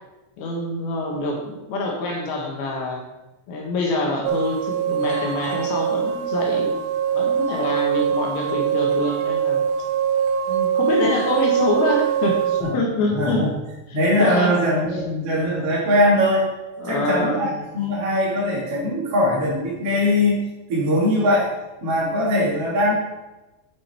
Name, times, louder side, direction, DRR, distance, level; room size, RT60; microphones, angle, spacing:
voice 1, 0.4-3.0 3.5-6.7 7.1-9.7 10.5-13.5 14.2-14.6 16.8-17.4, left 2 dB, 65° left, 0 dB, 2.9 m, -25 dB
sound 1, 4.2-12.6, right 8 dB, 75° right, 2.6 m, -23 dB
voice 2, 13.1-13.5 13.9-16.5 16.8-20.4 20.7-21.5 21.8-22.9, left 1 dB, 40° right, -7 dB, 2.6 m, -21 dB
8.5 x 7.3 x 4.5 m, 1.1 s
omnidirectional pair, 5.4 m